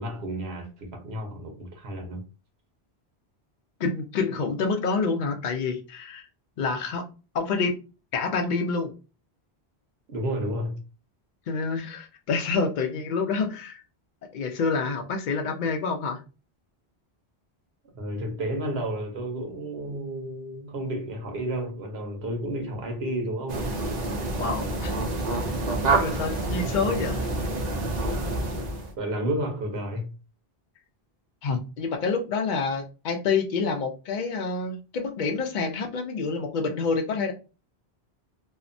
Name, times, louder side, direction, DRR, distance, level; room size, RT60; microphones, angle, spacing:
voice 1, 0.0-2.2 10.1-10.8 17.9-23.8 29.0-30.1, right 1 dB, 80° right, 1.0 m, -31 dB
voice 2, 3.8-6.2 6.6-7.1 7.3-7.8 8.1-8.9 11.5-13.8 14.3-16.2 24.4-25.0 25.4-25.5 26.0-27.3 31.4-37.3, left 4 dB, 55° left, 0.6 m, -27 dB
sound 1, 23.5-28.9, right 2 dB, 55° right, 0.5 m, -27 dB
2.7 x 2.1 x 2.5 m
omnidirectional pair, 1.1 m